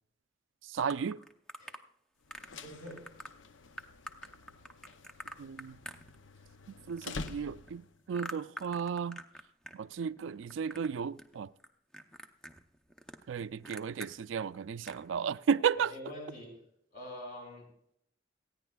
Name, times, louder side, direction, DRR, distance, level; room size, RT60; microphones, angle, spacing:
voice 1, 0.7-1.2 5.4-5.8 6.9-9.2 9.7-11.5 13.3-15.9, right 7 dB, 80° right, 0.4 m, -33 dB
sound 1, 0.8-1.8 2.3-2.6 2.9-3.3 3.8-6.5 6.8-9.8 10.0-10.9 11.2-11.7 11.9-14.1 14.5-14.6 14.8-15.1, equal, 5° left, 0.6 m, -46 dB
sound 2, 2.2-8.0, left 4 dB, 80° left, 0.6 m, -47 dB
voice 2, 2.6-3.1 15.8-16.6 16.9-17.7, left 1 dB, 50° left, 5.8 m, -45 dB
30.0 x 10.0 x 2.3 m
head